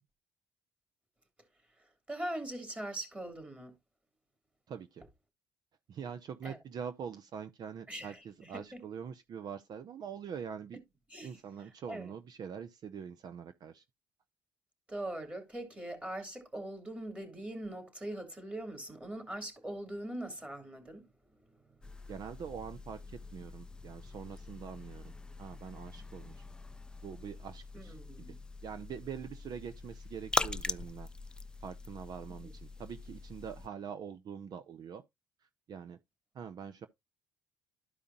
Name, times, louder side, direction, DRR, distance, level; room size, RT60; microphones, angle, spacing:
voice 1, 1.8-3.7 6.4-6.6 7.9-8.8 11.1-12.1 14.9-21.1 21.9-22.0 27.7-28.4 32.4-32.5, right 1 dB, 15° right, 2.9 m, -42 dB
voice 2, 4.7-5.0 5.9-10.8 11.2-13.8 22.1-25.1 25.4-26.4 27.0-28.3 28.6-31.1 31.6-35.0 35.7-36.0 36.3-36.9, right 7 dB, 55° right, 0.6 m, -44 dB
sound 1, 21.8-33.7, left 2 dB, 10° left, 0.4 m, -42 dB
12.5 x 4.9 x 2.7 m
cardioid pair, 85°, 8 cm